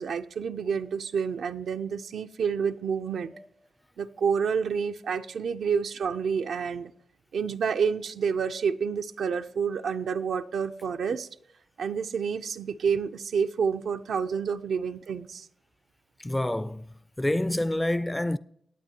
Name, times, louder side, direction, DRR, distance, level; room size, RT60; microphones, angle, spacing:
voice 1, 0.0-3.3 4.0-6.9 7.3-11.3 11.8-15.5, right 6 dB, 80° right, 0.4 m, -29 dB
voice 2, 16.2-18.4, left 1 dB, 15° left, 0.4 m, -28 dB
21.5 x 8.5 x 2.8 m
cardioid pair, 65°, 0 cm